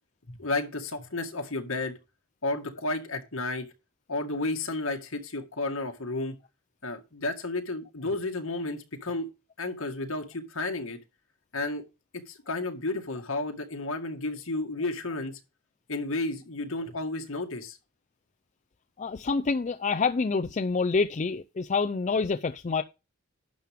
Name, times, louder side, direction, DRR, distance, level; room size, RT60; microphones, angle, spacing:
voice 1, 0.3-2.0 2.4-3.7 4.1-6.3 6.8-9.3 9.6-11.0 11.5-11.8 12.3-15.4 15.9-17.8, left 2 dB, 65° left, 2.0 m, -32 dB
voice 2, 19.0-22.8, left 4 dB, 35° left, 0.4 m, -27 dB
11.5 x 7.4 x 3.6 m
head